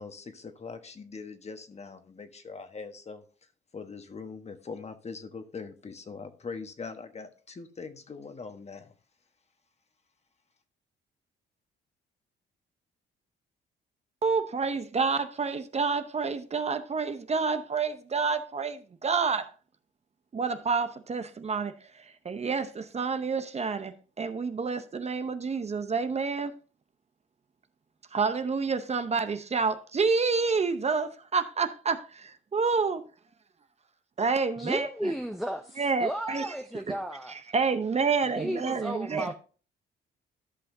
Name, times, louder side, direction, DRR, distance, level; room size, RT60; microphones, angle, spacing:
voice 1, 0.0-3.2 3.7-8.9, left 4 dB, 35° left, 1.2 m, -42 dB
voice 2, 14.2-19.5 20.3-26.5 28.1-33.0 34.2-35.1 35.8-36.6 36.9-37.0 37.3-39.3, right 5 dB, 35° right, 0.8 m, -29 dB
voice 3, 34.6-35.6 36.0-37.3 38.3-39.3, equal, ahead, 0.6 m, -33 dB
13.5 x 5.6 x 2.7 m
cardioid pair, 90°, 20 cm